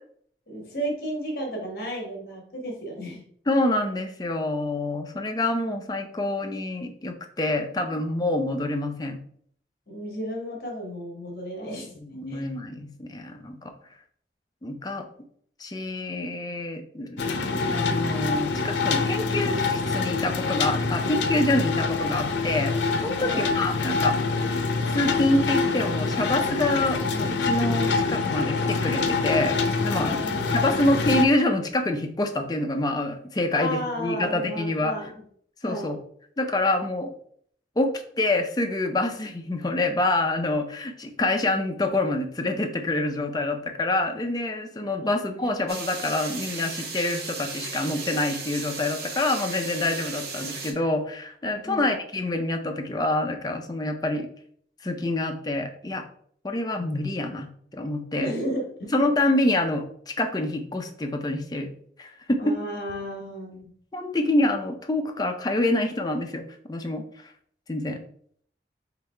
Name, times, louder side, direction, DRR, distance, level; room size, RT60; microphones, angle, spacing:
voice 1, 0.5-3.2 9.9-12.0 12.3-12.5 23.2-23.5 29.9-30.6 33.5-35.2 35.6-36.0 45.0-45.4 51.6-51.9 58.1-58.9 62.4-63.6, equal, 55° left, 0 dB, 1.5 m, -33 dB
voice 2, 3.5-9.2 12.0-13.7 14.6-15.1 15.6-24.2 24.9-30.2 30.5-34.9 35.6-36.0 36.4-37.1 37.8-54.3 54.8-56.0 56.4-58.3 58.9-61.7 62.0-62.5 63.9-66.4 66.7-67.3 67.7-68.0, left 2 dB, 20° left, 4 dB, 0.5 m, -26 dB
sound 1, 17.2-31.3, left 4 dB, 85° left, 0.5 m, -25 dB
sound 2, 45.7-50.7, right 4 dB, 65° right, 0.9 m, -35 dB
4.0 x 3.1 x 4.3 m, 0.62 s
head